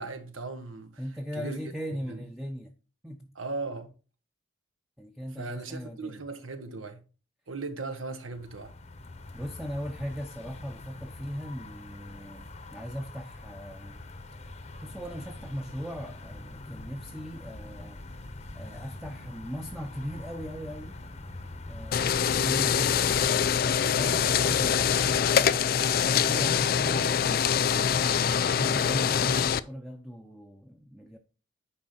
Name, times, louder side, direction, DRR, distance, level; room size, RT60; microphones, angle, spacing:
voice 1, 0.0-1.0 1.3-1.6 2.1-2.2 3.3-3.9 5.4-7.0 7.5-8.7, right 3 dB, 90° right, 1.3 m, -37 dB
voice 2, 1.0-2.7 3.0-3.3 5.0-6.2 9.3-14.0 14.8-18.0 18.5-21.0 21.7-23.2 23.7-25.4 26.2-31.2, equal, ahead, 0.6 m, -39 dB
sound 1, 8.3-25.5, left 2 dB, 30° left, 0.7 m, -43 dB
sound 2, 21.9-29.6, left 7 dB, 50° left, 0.4 m, -24 dB
9.8 x 4.8 x 4.2 m
head